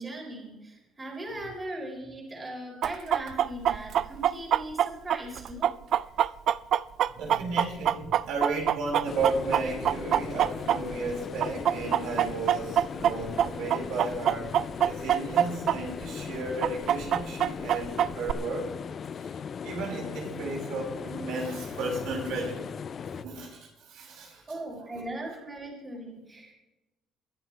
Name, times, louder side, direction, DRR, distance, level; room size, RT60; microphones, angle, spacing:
voice 1, 0.0-5.7 24.5-26.5, right 1 dB, 20° right, -1 dB, 4.0 m, -39 dB
Chicken rooster, 2.8-11.1 11.4-15.8 16.0-16.1 16.6-18.3, right 10 dB, 55° right, 0.3 m, -24 dB
voice 2, 7.1-14.5 14.8-18.7 19.2-22.7 23.1-24.4 24.9-25.0, right 3 dB, 80° right, -1 dB, 5.1 m, -34 dB
sound 1, 9.0-23.2, left 7 dB, 40° left, 0.4 m, -38 dB
21.5 x 11.5 x 3.4 m, 1.0 s
cardioid pair, 130°, 0 cm